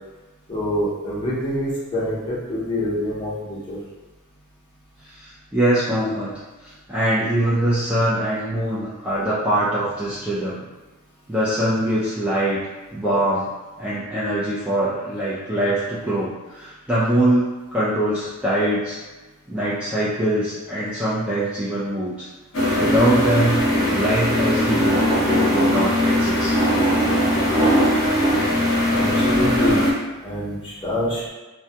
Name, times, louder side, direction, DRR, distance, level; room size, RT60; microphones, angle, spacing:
voice 1, 0.5-3.8 28.9-29.8 30.2-31.3, left 1 dB, 25° left, -8 dB, 0.7 m, -26 dB
voice 2, 5.2-6.3 6.6-10.6 11.3-12.6 12.9-13.5 13.8-19.0 19.5-22.3 22.8-23.6 23.9-26.5, right 1 dB, 5° right, -11 dB, 0.4 m, -23 dB
sound 1, 22.5-29.9, equal, 55° left, 0.7 m, -19 dB
2.2 x 2.2 x 2.7 m, 1.2 s
head